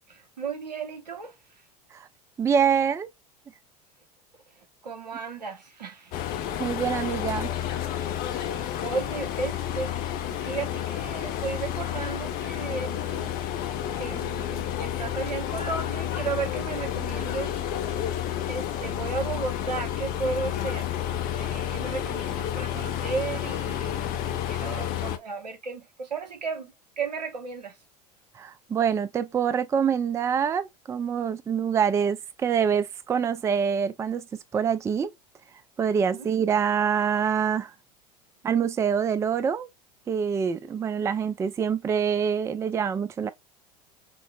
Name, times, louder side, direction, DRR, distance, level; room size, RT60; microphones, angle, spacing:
voice 1, 0.1-1.4 4.6-6.1 8.3-13.4 14.0-17.6 17.9-18.0 18.5-21.0 21.3-24.1 24.5-27.8 36.0-36.3, right 4 dB, 80° right, 0.9 m, -34 dB
voice 2, 2.4-3.1 6.6-7.5 28.4-34.3 34.5-35.1 35.8-37.7 38.4-39.7 40.1-43.3, right 7 dB, 15° right, 0.3 m, -25 dB
sound 1, 6.1-25.2, left 10 dB, 45° left, 0.6 m, -30 dB
5.9 x 2.0 x 2.2 m
figure-of-eight pair, 75°, 21 cm